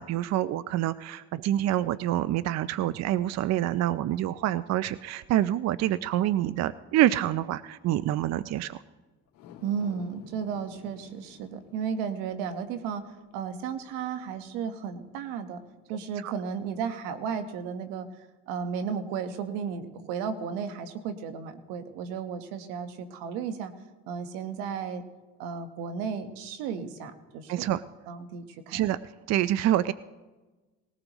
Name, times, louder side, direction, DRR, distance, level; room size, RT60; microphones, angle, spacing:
voice 1, 0.0-8.8 16.2-16.3 27.5-27.8 28.7-29.0 29.3-29.9, right 13 dB, 50° right, 16 dB, 0.5 m, -26 dB
sound 1, 9.3-15.8 16.2-16.3, left 8 dB, 80° left, 2.3 m, -54 dB
voice 2, 9.6-15.6 15.9-23.7 24.1-25.0 25.4-27.7 28.1-28.8, right 6 dB, 90° right, 9 dB, 1.3 m, -34 dB
19.5 x 18.0 x 3.0 m, 1.2 s
cardioid pair, 100°, 33 cm